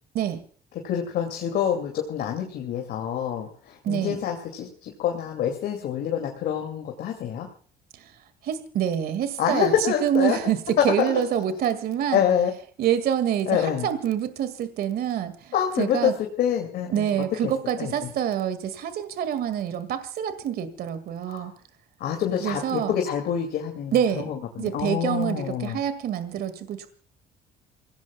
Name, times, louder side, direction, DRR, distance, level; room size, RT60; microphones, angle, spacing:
voice 1, 0.8-7.5 9.4-10.4 10.8-11.2 12.1-12.5 13.5-13.9 15.5-17.1 17.4-17.5 17.8-17.9 21.3-21.5 22.0-25.8, left 9 dB, 70° left, 2 dB, 2.4 m, -26 dB
voice 2, 3.8-4.2 7.9-8.1 8.4-9.7 10.0-12.2 12.8-16.1 16.9-21.5 22.4-22.9 23.9-24.3 24.6-26.9, right 9 dB, 65° right, 11 dB, 2.0 m, -26 dB
27.5 x 17.5 x 2.3 m, 0.42 s
cardioid pair, 110°, 17 cm